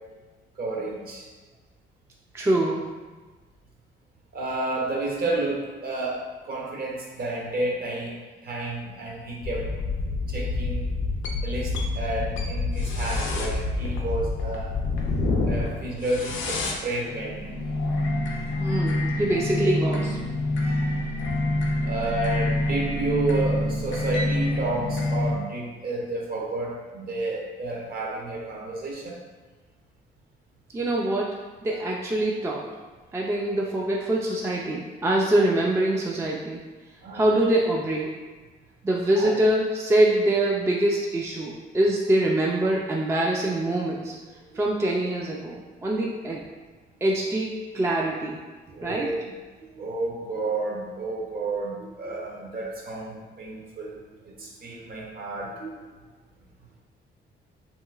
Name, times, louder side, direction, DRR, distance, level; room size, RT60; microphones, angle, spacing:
voice 1, 0.6-1.3 4.3-8.2 8.4-9.7 10.3-10.9 11.4-14.8 15.4-17.5 20.6-21.0 21.8-29.2 31.7-31.8 37.0-37.3 39.2-39.3 44.5-44.6 48.7-49.2 49.6-54.0 54.2-55.8, right 2 dB, 50° right, -2 dB, 0.8 m, -31 dB
voice 2, 2.3-2.8 18.6-20.2 30.7-31.3 31.6-32.7 33.1-36.6 37.1-38.1 38.8-44.1 44.5-46.4 47.0-48.4 48.8-49.1, right 1 dB, 15° right, -2 dB, 0.3 m, -24 dB
sound 1, 9.4-25.3, left 2 dB, 70° left, 0.5 m, -27 dB
3.0 x 2.9 x 2.3 m, 1.3 s
cardioid pair, 90°, 20 cm